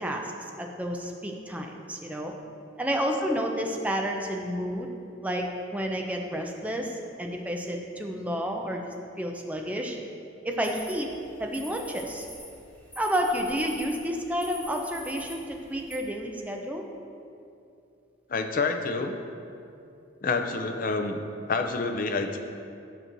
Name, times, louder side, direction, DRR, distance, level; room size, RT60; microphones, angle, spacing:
voice 1, 0.0-2.3 2.8-4.9 5.2-5.5 5.7-10.0 10.4-11.1 11.4-12.3 13.0-16.8, equal, 10° right, 1 dB, 0.5 m, -30 dB
sound 1, 10.6-16.0, left 1 dB, 10° left, 0.9 m, -45 dB
voice 2, 18.3-19.1 20.2-21.2 21.5-22.4, left 4 dB, 50° left, 6 dB, 0.4 m, -28 dB
8.8 x 6.1 x 2.6 m, 2.6 s
head